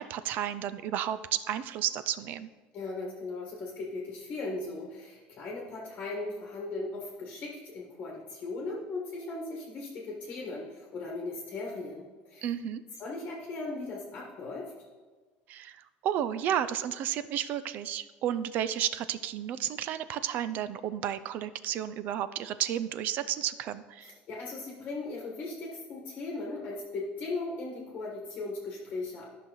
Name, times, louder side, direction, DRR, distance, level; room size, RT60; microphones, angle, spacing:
voice 1, 0.0-2.5 12.4-12.8 15.5-24.1, right 10 dB, 40° right, 14 dB, 0.4 m, -32 dB
voice 2, 2.7-12.5 13.0-14.7 24.0-29.3, left 3 dB, 30° left, -1 dB, 1.3 m, -38 dB
13.5 x 5.8 x 3.9 m, 1.3 s
cardioid pair, 180°, 5 cm